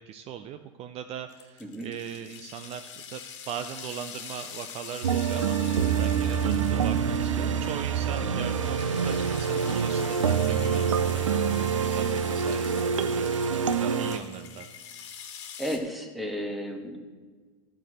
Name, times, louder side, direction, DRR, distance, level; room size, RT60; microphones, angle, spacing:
voice 1, 0.0-3.2 3.5-5.6 6.0-11.2 11.7-13.3 13.8-14.7, right 9 dB, 40° right, 9 dB, 0.5 m, -39 dB
sound 1, 1.3-15.8, left 8 dB, 65° left, 1.5 m, -44 dB
sound 2, 5.0-14.2, right 7 dB, 90° right, 0.6 m, -26 dB
voice 2, 15.6-17.0, equal, ahead, 2 dB, 1.7 m, -33 dB
11.0 x 4.8 x 7.7 m, 1.5 s
hypercardioid pair, 95°, 16 cm